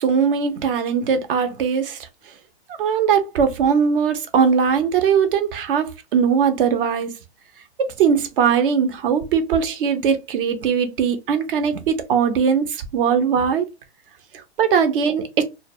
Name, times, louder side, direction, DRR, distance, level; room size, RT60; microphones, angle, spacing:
voice 1, 0.0-2.3 2.8-7.1 7.8-13.7 14.3-15.4, right 7 dB, 55° right, 0.6 m, -20 dB
2.1 x 2.0 x 3.4 m
hypercardioid pair, 125°, 33 cm